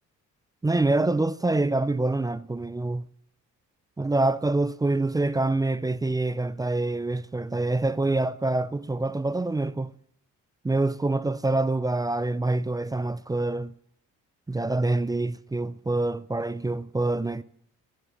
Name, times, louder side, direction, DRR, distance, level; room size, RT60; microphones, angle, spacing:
voice 1, 0.6-3.1 4.0-9.9 10.6-13.7 14.5-17.4, right 2 dB, 10° right, 0.5 m, -26 dB
15.5 x 6.6 x 8.4 m
cardioid pair, 90°, 30 cm